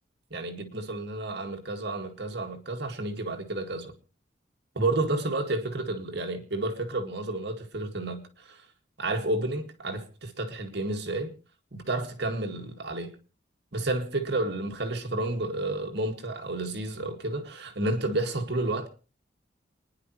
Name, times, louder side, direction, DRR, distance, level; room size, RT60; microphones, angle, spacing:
voice 1, 0.3-3.9 4.8-8.2 8.5-8.6 9.0-11.3 11.7-13.1 13.7-18.9, right 2 dB, 65° right, 2.1 m, -31 dB
28.5 x 10.5 x 3.1 m
head